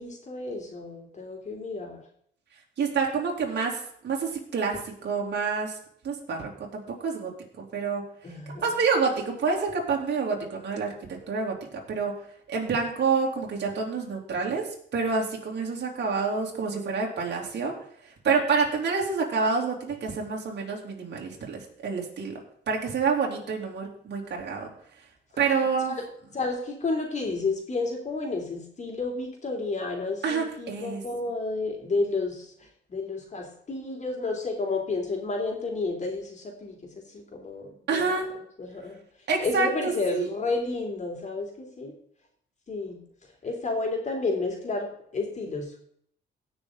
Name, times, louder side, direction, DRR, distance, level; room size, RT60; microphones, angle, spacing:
voice 1, 0.0-2.0 8.2-8.7 25.9-26.0 26.3-38.2 38.6-39.0 39.4-42.0 42.7-43.0 43.4-44.9 45.1-45.8, left 3 dB, 35° left, 1 dB, 3.5 m, -31 dB
voice 2, 2.8-5.8 6.0-7.3 7.6-12.1 12.5-17.8 18.0-22.4 22.7-24.7 25.0-25.1 25.4-26.0 30.2-31.0 37.9-38.3 39.3-40.3, right 5 dB, 60° right, -1 dB, 3.4 m, -28 dB
17.5 x 6.4 x 4.0 m, 0.65 s
cardioid pair, 90°, 20 cm